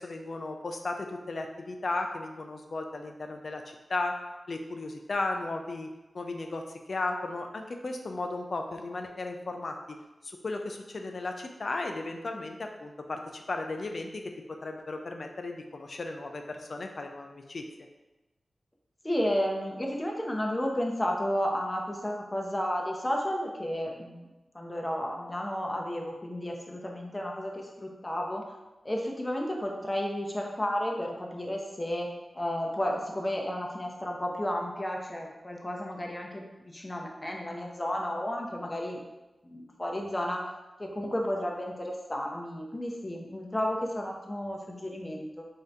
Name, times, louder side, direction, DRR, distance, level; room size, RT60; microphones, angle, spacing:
voice 1, 0.0-4.2 4.5-5.9 6.1-9.8 10.2-17.6, left 2 dB, 65° left, 4 dB, 0.4 m, -35 dB
voice 2, 19.0-24.3 24.5-28.4 28.8-32.1 32.3-39.0 39.4-40.4 40.8-45.5, equal, 25° left, 0 dB, 0.7 m, -32 dB
3.7 x 2.7 x 3.3 m, 1.1 s
cardioid pair, 40°, 0 cm